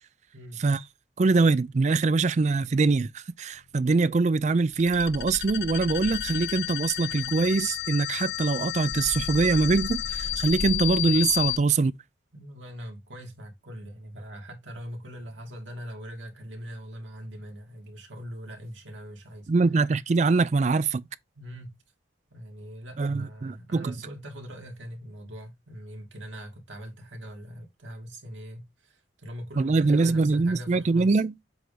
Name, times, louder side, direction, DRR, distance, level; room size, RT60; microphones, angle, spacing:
voice 1, 1.2-11.9 19.5-21.1 23.0-23.9 29.6-31.3, right 3 dB, 40° right, 0.4 m, -23 dB
sound 1, 4.7-11.6, left 12 dB, 65° left, 0.6 m, -31 dB
voice 2, 12.3-19.5 21.4-21.8 22.3-31.2, equal, 90° right, 2.2 m, -42 dB
7.7 x 2.7 x 5.0 m
head